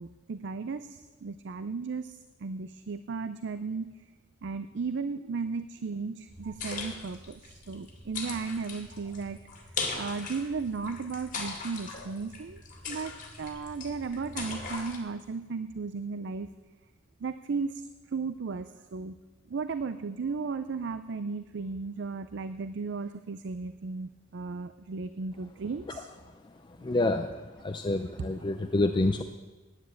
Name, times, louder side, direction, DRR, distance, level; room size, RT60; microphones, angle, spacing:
voice 1, 0.0-3.9 4.4-9.4 9.9-13.1 13.4-16.5 17.2-19.1 19.5-26.1 28.2-28.3, right 4 dB, 65° right, 11 dB, 0.5 m, -35 dB
sound 1, 6.3-15.0, left 4 dB, 45° left, 2.3 m, -40 dB
voice 2, 26.8-27.3 27.6-29.2, left 2 dB, 25° left, 7 dB, 0.4 m, -27 dB
10.0 x 9.7 x 8.1 m, 1.3 s
head